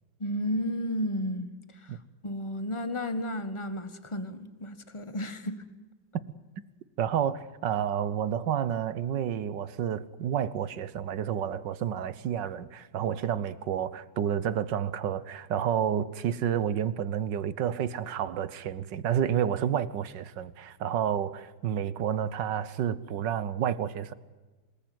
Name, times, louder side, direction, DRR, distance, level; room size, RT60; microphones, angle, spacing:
voice 1, 0.2-2.0 2.2-5.6, equal, 15° left, 1.3 m, -33 dB
voice 2, 7.0-24.1, right 9 dB, 65° right, 1.6 m, -30 dB
27.0 x 19.5 x 9.4 m
omnidirectional pair, 2.1 m